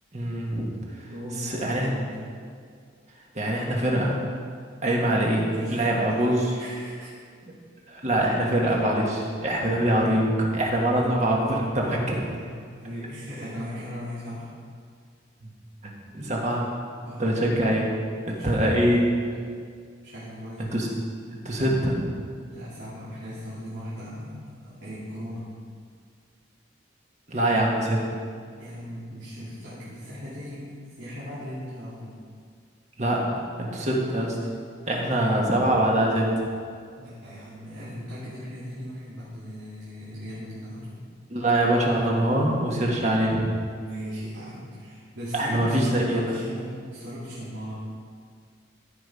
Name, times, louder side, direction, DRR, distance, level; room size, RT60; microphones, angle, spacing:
voice 1, 0.1-0.7 1.4-1.9 3.3-4.2 4.8-5.4 5.7-6.5 7.9-12.3 16.1-16.7 17.2-17.8 18.3-19.0 20.7-20.9 21.3-22.1 27.3-28.0 33.0-34.4 34.9-36.4 41.3-43.5 45.3-46.2, right 1 dB, 35° right, -1 dB, 1.6 m, -24 dB
voice 2, 1.1-2.1 5.4-7.1 8.6-8.8 9.6-9.9 12.3-14.5 17.0-17.4 18.3-19.1 20.0-20.7 22.5-25.5 27.3-27.6 28.6-32.2 35.2-35.4 37.0-41.0 43.7-47.7, equal, 75° right, -11 dB, 2.4 m, -38 dB
14.5 x 5.4 x 4.9 m, 2.1 s
head